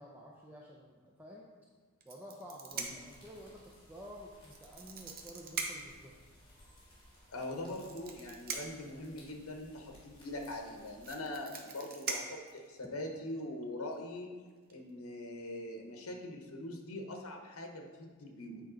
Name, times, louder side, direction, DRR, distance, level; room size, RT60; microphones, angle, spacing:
voice 1, 0.0-1.5 2.0-6.2, equal, 10° right, -3 dB, 0.5 m, -51 dB
sound 1, 2.0-3.2 4.4-6.0 7.4-8.9 10.3-10.4 10.7-13.1 13.9-14.2 14.5-14.7, right 5 dB, 45° right, 0.8 m, -41 dB
sound 2, 2.7-11.1, left 1 dB, 25° left, 2.0 m, -60 dB
voice 2, 7.3-14.3 14.7-18.6, left 1 dB, 80° left, 3 dB, 0.9 m, -42 dB
8.5 x 4.7 x 3.9 m, 1.4 s
head